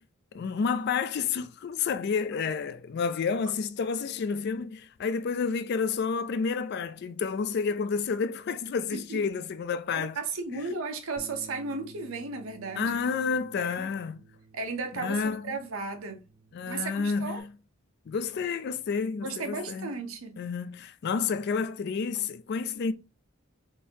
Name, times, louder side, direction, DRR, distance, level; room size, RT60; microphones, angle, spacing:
voice 1, 0.3-10.2 10.5-10.6 12.8-14.3 14.9-15.6 16.5-17.5 18.1-19.9 20.4-22.9, left 5 dB, 50° left, 0.3 m, -30 dB
voice 2, 9.9-12.9 13.6-13.9 14.5-16.2 16.7-17.4 19.2-20.4, right 3 dB, 90° right, 0.7 m, -35 dB
Bass guitar, 11.2-17.4, right 3 dB, 35° right, 0.5 m, -53 dB
3.7 x 2.6 x 2.8 m
head